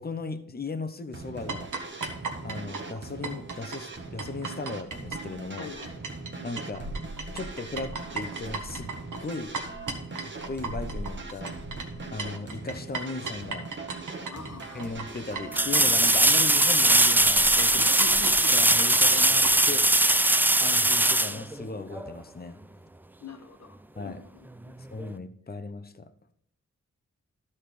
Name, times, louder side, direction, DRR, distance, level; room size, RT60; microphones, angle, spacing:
voice 1, 0.0-1.7 2.4-5.7 6.4-6.9 7.3-8.9 9.2-9.6 10.2-11.6 12.1-13.7 14.7-17.9 18.5-20.1 20.6-22.6 24.0-24.2 24.9-26.1, left 3 dB, 30° left, 10 dB, 0.9 m, -37 dB
sound 1, 1.1-16.3, right 3 dB, 40° right, 1.3 m, -41 dB
sound 2, 1.5-6.3 6.6-19.5, right 4 dB, 85° right, 1.4 m, -36 dB
voice 2, 5.6-5.9 14.0-14.9 17.7-18.5 23.2-23.8 24.0-24.8, left 5 dB, 60° left, 5 dB, 1.3 m, -43 dB
sound 3, 14.1-14.2 15.5-22.1 25.0-25.1, right 1 dB, 5° right, 0.4 m, -21 dB
12.5 x 4.3 x 4.9 m, 0.68 s
cardioid pair, 55°, 30 cm